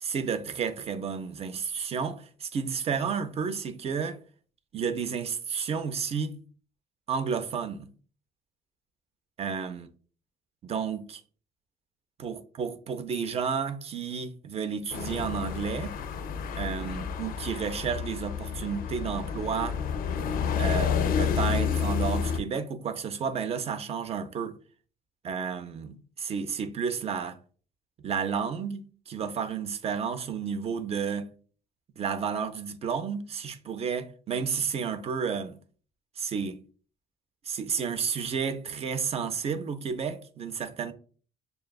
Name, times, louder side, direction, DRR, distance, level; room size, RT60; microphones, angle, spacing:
voice 1, 0.0-4.2 4.7-6.4 7.1-7.9 9.4-9.9 10.6-11.2 12.2-16.0 16.6-19.8 20.6-24.6 25.2-27.4 28.0-31.3 32.0-35.6 36.2-36.6 37.5-40.9, right 6 dB, 35° right, 0.5 m, -31 dB
sound 1, 14.9-22.4, left 7 dB, 60° left, 0.4 m, -30 dB
6.6 x 2.3 x 2.2 m
cardioid pair, 110°, 17 cm